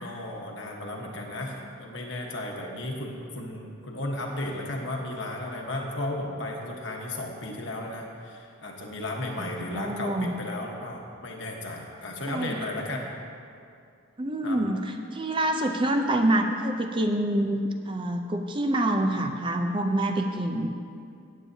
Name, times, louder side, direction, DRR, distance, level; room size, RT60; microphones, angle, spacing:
voice 1, 0.0-13.1 14.4-14.6, left 1 dB, 60° left, 0 dB, 1.2 m, -34 dB
voice 2, 9.4-10.3 12.3-12.7 14.2-20.7, right 1 dB, 25° right, 4 dB, 0.5 m, -27 dB
15.5 x 8.5 x 2.8 m, 2.4 s
head